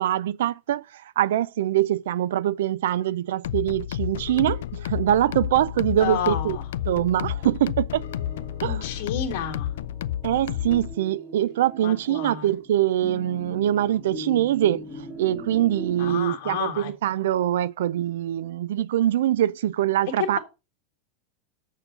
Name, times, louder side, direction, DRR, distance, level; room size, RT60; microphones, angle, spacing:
voice 1, 0.0-6.6 6.9-8.0 8.6-8.8 10.2-14.8 15.2-20.4, right 12 dB, 80° right, 0.3 m, -23 dB
sound 1, 3.4-11.0, left 12 dB, 90° left, 0.3 m, -31 dB
voice 2, 5.9-6.7 8.6-9.7 11.8-12.5 16.0-16.9 20.2-20.4, left 8 dB, 50° left, 2.1 m, -30 dB
sound 2, 6.2-16.2, equal, 5° right, 2.1 m, -42 dB
7.0 x 4.5 x 6.8 m
supercardioid pair, 165°, 0 cm